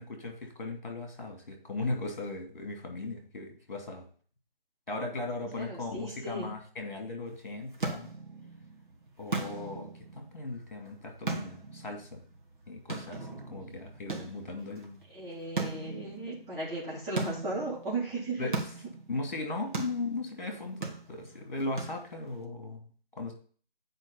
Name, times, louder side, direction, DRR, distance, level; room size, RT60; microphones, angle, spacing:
voice 1, 0.0-4.1 4.9-8.1 9.2-12.2 12.7-15.0 18.4-18.5 19.1-22.9 23.2-23.3, left 2 dB, 50° left, 3 dB, 2.7 m, -37 dB
voice 2, 5.5-6.5 15.1-18.6 19.6-19.7, right 2 dB, 15° right, -9 dB, 2.2 m, -36 dB
sound 1, 7.3-22.4, right 3 dB, 55° right, 1.8 m, -40 dB
8.9 x 5.0 x 5.3 m, 0.43 s
figure-of-eight pair, 175°, 29 cm